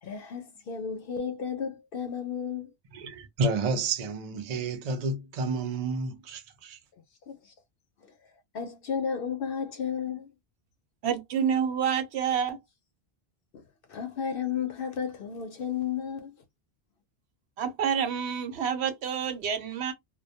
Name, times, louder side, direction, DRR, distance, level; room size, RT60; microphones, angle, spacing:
voice 1, 0.0-2.7 7.3-7.4 8.5-10.3 13.9-16.3, left 7 dB, 65° left, 0.7 m, -33 dB
voice 2, 2.9-6.8, right 3 dB, 50° right, 0.5 m, -30 dB
voice 3, 11.0-12.6 17.6-19.9, right 8 dB, 85° right, 1.0 m, -28 dB
2.2 x 2.1 x 2.6 m
omnidirectional pair, 1.1 m